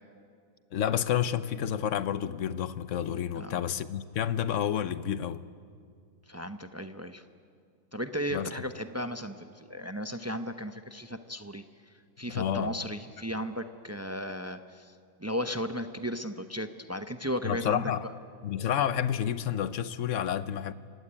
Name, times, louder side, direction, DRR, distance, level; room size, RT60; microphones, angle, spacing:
voice 1, 0.7-5.4 8.3-8.5 12.3-12.7 17.4-18.1 18.4-20.7, left 9 dB, 60° left, 15 dB, 1.0 m, -30 dB
voice 2, 6.3-7.2 7.9-11.6 12.2-14.9 15.2-18.1, equal, 25° right, 9 dB, 0.3 m, -35 dB
28.5 x 16.5 x 9.9 m, 2.2 s
omnidirectional pair, 1.7 m